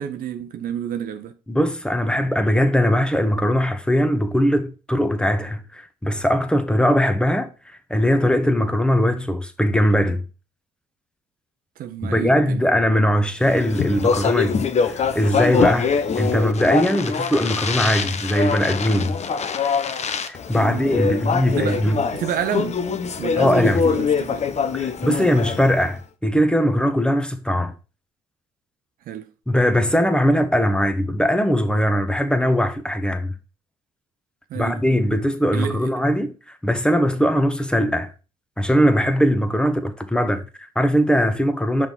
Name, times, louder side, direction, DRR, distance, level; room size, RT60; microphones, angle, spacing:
voice 1, 0.0-1.3 11.8-12.6 20.6-20.9 21.5-21.8 22.1-22.8 23.2-24.5 25.2-25.3 29.1-29.3 34.5-35.0 35.5-35.8, right 9 dB, 65° right, 0.7 m, -29 dB
voice 2, 1.5-10.2 12.1-19.2 20.3-22.0 23.4-23.9 24.7-27.7 29.5-33.3 34.5-38.1 38.6-41.9, equal, 5° left, 1.2 m, -20 dB
Speech, 13.5-25.9, left 6 dB, 45° left, 0.9 m, -24 dB
5.9 x 3.7 x 5.6 m
hypercardioid pair, 50°, 16 cm